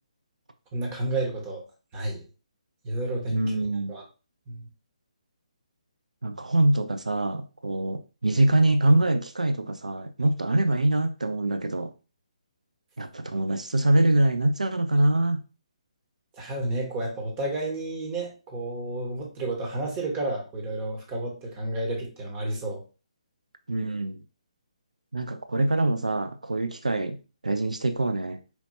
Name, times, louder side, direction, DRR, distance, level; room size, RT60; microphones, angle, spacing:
voice 1, 0.7-1.6 1.9-2.2 2.8-3.4 3.9-4.0 4.5-4.7 16.4-22.8, right 2 dB, 25° right, 0 dB, 1.1 m, -31 dB
voice 2, 3.3-4.0 6.2-11.9 13.0-15.4 23.7-24.2 25.1-27.2 27.4-28.4, right 1 dB, 85° right, 8 dB, 0.3 m, -24 dB
4.3 x 2.6 x 2.7 m, 0.33 s
figure-of-eight pair, 140°, 4 cm